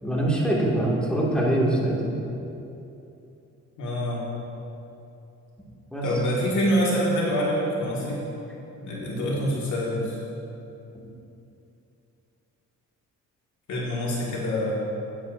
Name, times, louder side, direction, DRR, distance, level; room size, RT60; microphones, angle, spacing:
voice 1, 0.0-2.2 5.9-6.0, right 1 dB, 5° left, -5 dB, 2.1 m, -23 dB
voice 2, 3.8-4.2 6.0-8.2 8.8-10.2 13.7-14.8, equal, 70° left, -5 dB, 1.9 m, -26 dB
11.5 x 9.2 x 2.6 m, 2.8 s
cardioid pair, 90°, 30 cm